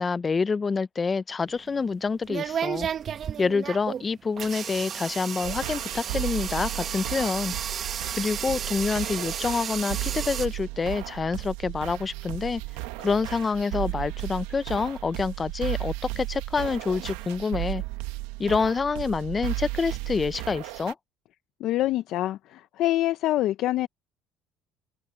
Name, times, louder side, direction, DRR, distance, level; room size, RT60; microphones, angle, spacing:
voice 1, 0.0-2.9 3.4-7.5 8.1-12.6 13.0-17.8 18.4-20.9, left 4 dB, 30° left, 0.6 m, -27 dB
sound 1, 1.5-10.5, right 8 dB, 45° right, 1.0 m, -33 dB
sound 2, 5.4-20.9, right 20 dB, 85° right, 1.5 m, -35 dB
voice 2, 21.6-23.9, left 15 dB, 65° left, 0.7 m, -25 dB
open air
supercardioid pair, 90°, 0 cm